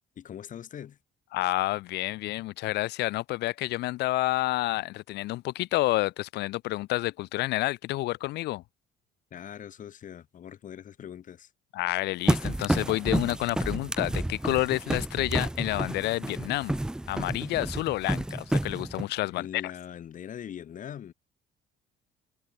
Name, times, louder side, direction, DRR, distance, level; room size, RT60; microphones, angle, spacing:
voice 1, 0.2-1.0 9.3-11.5 19.2-21.1, left 9 dB, 50° left, 2.5 m, -42 dB
voice 2, 1.3-8.6 11.7-16.8 17.1-19.6, left 18 dB, 80° left, 1.1 m, -29 dB
sound 1, 12.3-19.0, right 1 dB, 5° right, 0.4 m, -30 dB
cardioid pair, 110°, 17 cm